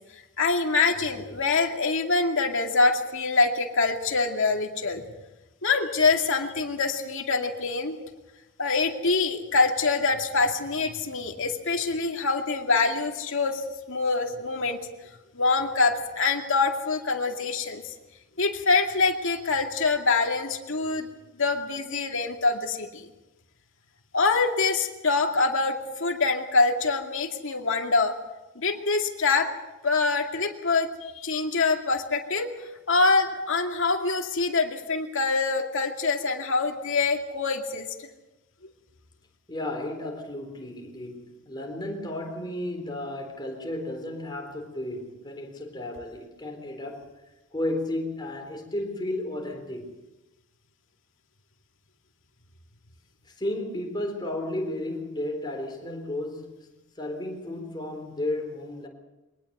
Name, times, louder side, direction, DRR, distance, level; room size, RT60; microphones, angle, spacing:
voice 1, 0.4-5.0 5.6-8.0 8.6-14.8 15.3-17.8 18.4-21.1 21.4-23.1 24.1-28.1 28.6-29.5 29.8-32.5 32.9-37.9, left 4 dB, 60° left, 2.3 m, -25 dB
voice 2, 39.5-47.1 47.5-49.9 53.4-58.9, left 1 dB, 20° left, 3.8 m, -33 dB
23.0 x 19.0 x 6.8 m
head